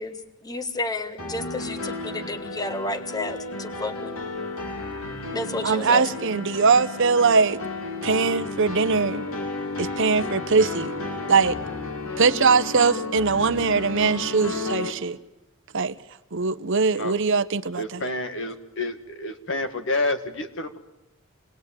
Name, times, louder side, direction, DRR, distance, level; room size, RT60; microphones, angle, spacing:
voice 1, 0.0-4.1 5.3-6.0, left 2 dB, 20° left, 1.6 m, -31 dB
sound 1, 1.2-14.9, left 3 dB, 85° left, 3.6 m, -33 dB
voice 2, 5.6-7.6 8.0-9.3 9.8-10.9 11.3-11.6 12.2-15.2 15.7-16.0 16.3-18.0, right 4 dB, 60° right, 0.9 m, -21 dB
voice 3, 17.8-20.8, left 2 dB, 60° left, 2.0 m, -29 dB
27.5 x 20.0 x 9.0 m
head